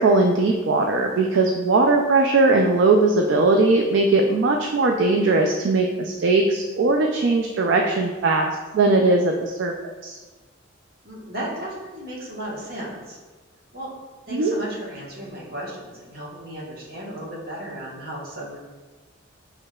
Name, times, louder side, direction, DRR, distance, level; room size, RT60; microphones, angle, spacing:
voice 1, 0.0-9.3 9.6-9.7 10.0-10.2 14.3-14.5, right 3 dB, 65° right, 2 dB, 0.3 m, -19 dB
voice 2, 11.0-13.2 13.7-13.9 14.3-18.6, right 1 dB, 45° right, -5 dB, 1.2 m, -34 dB
6.5 x 3.2 x 2.3 m, 1.3 s
head